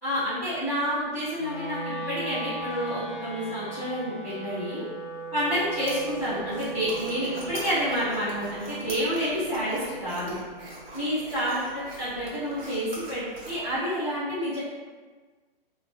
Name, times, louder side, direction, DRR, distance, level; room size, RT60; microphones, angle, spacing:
voice 1, 0.0-4.8 5.3-10.4 10.9-11.6 12.0-14.6, equal, 10° left, -18 dB, 0.5 m, -29 dB
Wind instrument woodwind instrument, 1.4-11.6, right 3 dB, 65° left, 0.7 m, -39 dB
sound 1, 5.5-13.8, right 1 dB, 70° right, 0.8 m, -43 dB
2.2 x 2.2 x 2.4 m, 1.4 s
hypercardioid pair, 160°, 30 cm